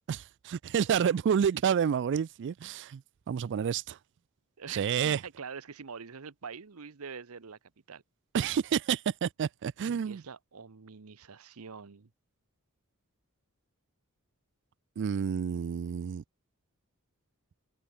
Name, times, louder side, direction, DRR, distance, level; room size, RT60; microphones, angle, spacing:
voice 1, 0.1-3.0 3.3-4.0 4.7-5.2 8.3-10.2 15.0-16.2, right 7 dB, 55° right, 0.3 m, -29 dB
voice 2, 4.6-7.6 7.9-8.0 10.1-12.1, right 6 dB, 75° right, 0.9 m, -44 dB
head